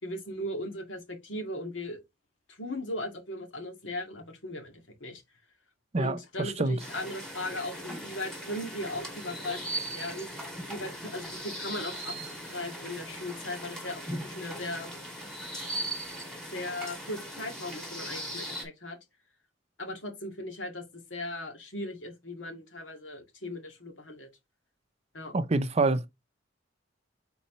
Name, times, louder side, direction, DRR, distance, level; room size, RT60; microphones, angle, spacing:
voice 1, 0.0-2.0 2.5-4.7 5.0-5.2 6.0-10.4 10.7-12.2 12.4-14.9 16.5-19.0 19.8-20.8 21.1-24.3 25.1-25.3, left 1 dB, 80° left, 2.1 m, -38 dB
voice 2, 5.9-6.8 25.3-26.0, right 2 dB, 35° right, 0.6 m, -26 dB
sound 1, 6.8-18.6, right 1 dB, 5° left, 2.1 m, -39 dB
4.3 x 4.1 x 5.4 m
head